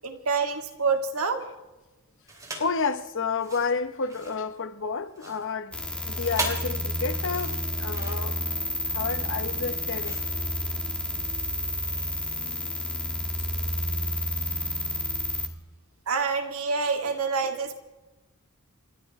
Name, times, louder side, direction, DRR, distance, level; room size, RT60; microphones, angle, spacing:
voice 1, 0.0-1.4 16.1-17.7, right 4 dB, 80° right, 2.4 m, -27 dB
sound 1, 2.3-2.8 3.3-11.1, right 2 dB, 15° right, 3.0 m, -39 dB
voice 2, 2.6-5.8 6.0-8.4 8.9-10.2, left 5 dB, 65° left, 1.0 m, -30 dB
sound 2, 5.7-15.5, left 1 dB, 5° left, 1.6 m, -30 dB
30.0 x 13.5 x 3.3 m
head